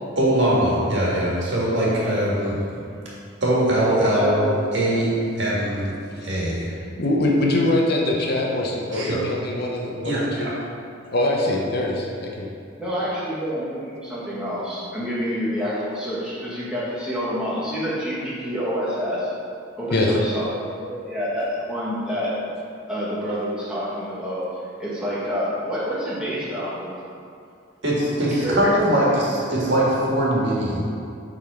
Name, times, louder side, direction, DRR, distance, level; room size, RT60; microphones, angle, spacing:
voice 1, 0.2-2.5 3.4-4.3 4.7-5.1 5.4-5.9 6.2-6.7 8.9-9.2 10.0-10.5 27.8-30.8, right 1 dB, 60° right, -6 dB, 1.7 m, -21 dB
voice 2, 3.9-5.1 6.8-7.0 12.8-19.3 19.8-22.3 22.9-24.4 24.8-27.0 28.2-28.6, equal, 5° right, -10 dB, 1.6 m, -27 dB
voice 3, 7.0-10.5 11.1-12.5 19.9-20.1, left 1 dB, 50° left, -1 dB, 0.8 m, -23 dB
7.2 x 3.9 x 4.9 m, 2.4 s
head